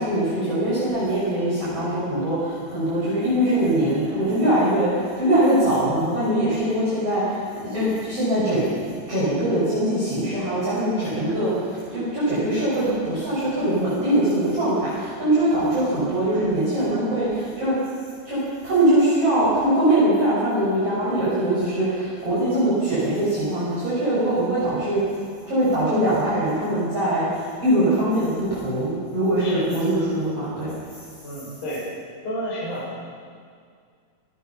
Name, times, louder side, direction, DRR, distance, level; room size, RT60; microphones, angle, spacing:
voice 1, 0.0-8.7 9.1-17.7 18.3-30.7, right 1 dB, 40° right, -10 dB, 7.6 m, -22 dB
voice 2, 31.2-31.8 32.2-32.9, equal, 45° left, -8 dB, 6.9 m, -30 dB
27.5 x 17.5 x 5.8 m, 2.1 s
omnidirectional pair, 4.5 m